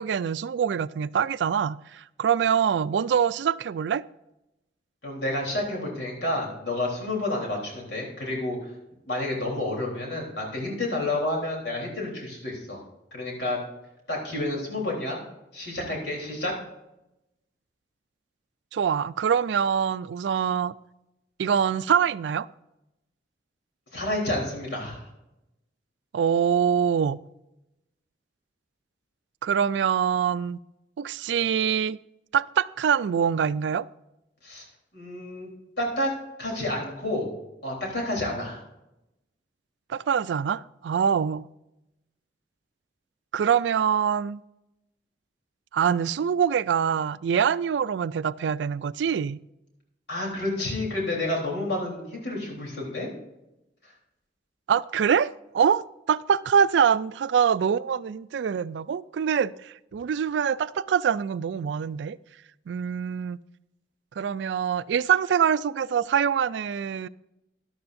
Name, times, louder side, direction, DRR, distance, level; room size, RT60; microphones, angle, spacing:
voice 1, 0.0-4.0 18.7-20.7 21.4-22.5 26.1-27.2 29.4-30.6 31.0-32.0 32.3-33.8 39.9-41.4 43.3-44.4 45.7-49.4 54.7-62.2 62.7-63.4 64.2-67.1, right 7 dB, 80° right, 0.3 m, -24 dB
voice 2, 5.0-8.7 9.1-12.8 13.1-13.6 14.1-15.2 15.5-16.6 23.9-25.1 34.4-34.6 34.9-35.5 35.8-37.3 37.6-38.6 50.1-53.1 53.8-53.9, left 1 dB, 70° left, 3.6 m, -30 dB
12.5 x 11.5 x 2.6 m
head